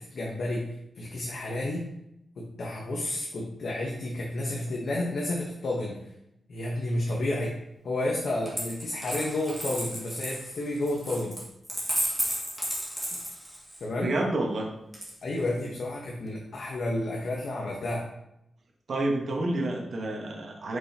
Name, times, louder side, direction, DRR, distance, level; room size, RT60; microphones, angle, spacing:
voice 1, 0.0-1.9 2.4-6.0 6.5-7.6 7.8-11.4 13.8-14.1 15.2-18.1, left 1 dB, 60° left, -3 dB, 1.1 m, -31 dB
Coin (dropping), 8.5-13.8 14.9-15.6, equal, 5° right, 1.9 m, -33 dB
voice 2, 14.0-14.7 18.9-20.8, right 2 dB, 55° right, 0 dB, 1.3 m, -29 dB
6.8 x 5.4 x 2.9 m, 0.82 s
wide cardioid pair, 140°, 0 cm